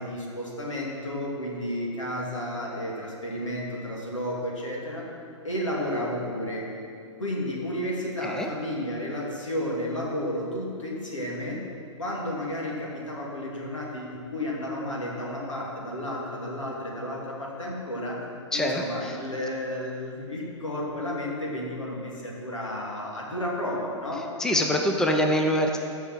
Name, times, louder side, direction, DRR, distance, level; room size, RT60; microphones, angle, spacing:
voice 1, 0.0-5.1 5.4-6.7 7.2-11.6 12.0-18.3 18.5-24.3, left 1 dB, 80° left, -3 dB, 2.9 m, -32 dB
voice 2, 18.5-19.1 24.4-25.8, equal, 5° left, 3 dB, 0.7 m, -24 dB
15.0 x 5.6 x 6.3 m, 2.4 s
figure-of-eight pair, 115°, 16 cm